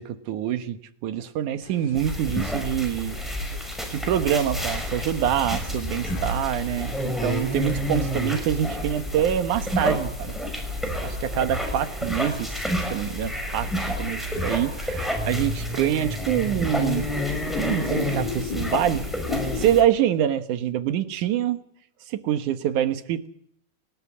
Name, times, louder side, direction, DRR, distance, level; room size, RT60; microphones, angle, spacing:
voice 1, 0.0-3.2 3.9-10.4 11.0-17.1 17.6-19.1 19.6-21.6 22.1-23.3, right 10 dB, 75° right, 10 dB, 2.7 m, -25 dB
sound 1, 1.6-19.8, left 6 dB, 75° left, 3.2 m, -39 dB
sound 2, 2.0-19.8, equal, ahead, 5.6 m, -29 dB
30.0 x 13.5 x 8.5 m, 0.68 s
omnidirectional pair, 3.7 m